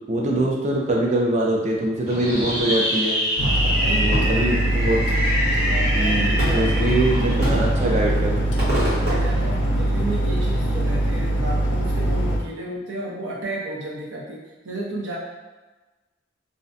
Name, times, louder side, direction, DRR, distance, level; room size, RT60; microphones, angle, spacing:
voice 1, 0.1-3.2 4.0-5.2 5.8-8.5, right 1 dB, 35° right, -2 dB, 0.4 m, -23 dB
Fireworks, 2.1-10.2, equal, 65° right, 1.0 m, -26 dB
sound 1, 3.4-12.4, right 1 dB, 70° left, 0.4 m, -22 dB
voice 2, 3.6-4.4 5.6-7.0 9.0-15.2, right 1 dB, 90° right, -4 dB, 0.6 m, -32 dB
2.4 x 2.1 x 2.5 m, 1.2 s
head